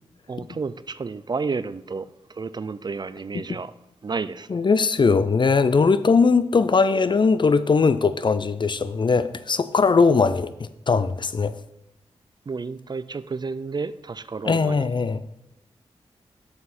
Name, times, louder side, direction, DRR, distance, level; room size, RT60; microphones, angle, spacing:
voice 1, 0.3-3.7 4.0-4.6 12.5-14.9, right 4 dB, 40° right, 0.4 m, -31 dB
voice 2, 4.5-11.5 14.4-15.2, left 4 dB, 45° left, 0.5 m, -20 dB
6.9 x 6.7 x 4.2 m
cardioid pair, 50°, 12 cm